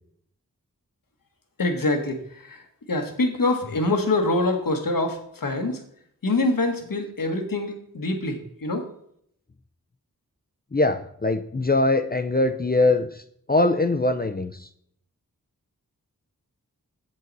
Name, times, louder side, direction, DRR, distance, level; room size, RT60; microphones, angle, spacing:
voice 1, 1.6-5.8 6.2-8.9, left 2 dB, 75° left, 4 dB, 1.4 m, -25 dB
voice 2, 10.7-13.2 13.5-14.7, left 2 dB, 25° left, 7 dB, 0.5 m, -22 dB
7.6 x 7.5 x 4.0 m, 0.67 s
wide cardioid pair, 60°, 34 cm